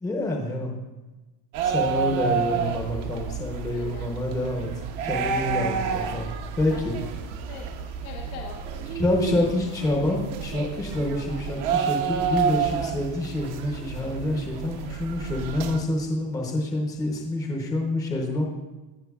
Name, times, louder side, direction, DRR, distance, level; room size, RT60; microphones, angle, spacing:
voice 1, 0.0-0.7 1.6-4.7 5.0-6.3 6.6-6.9 8.9-18.5, left 1 dB, 10° left, 0 dB, 0.7 m, -27 dB
sound 1, 1.5-15.8, right 7 dB, 50° right, 0.8 m, -30 dB
voice 2, 3.7-4.1 5.2-5.6 6.7-6.9 7.5-8.6, left 7 dB, 80° left, 0 dB, 1.0 m, -42 dB
16.0 x 5.7 x 2.3 m, 1.1 s
cardioid pair, 165°, 43 cm